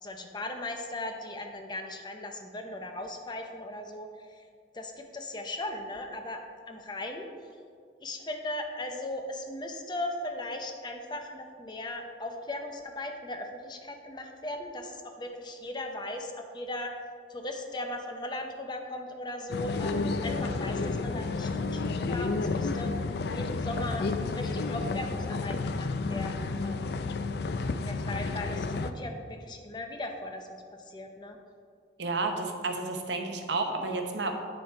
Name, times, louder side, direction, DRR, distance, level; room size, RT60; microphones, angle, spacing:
voice 1, 0.0-4.5 4.7-6.4 6.7-7.3 8.0-16.9 17.3-26.9 27.8-31.4, left 1 dB, 25° left, 4 dB, 0.6 m, -38 dB
sound 1, 19.5-28.9, left 3 dB, 60° left, 0.4 m, -31 dB
voice 2, 32.0-34.4, right 3 dB, 70° right, 4 dB, 0.9 m, -31 dB
8.3 x 6.6 x 4.5 m, 2.2 s
head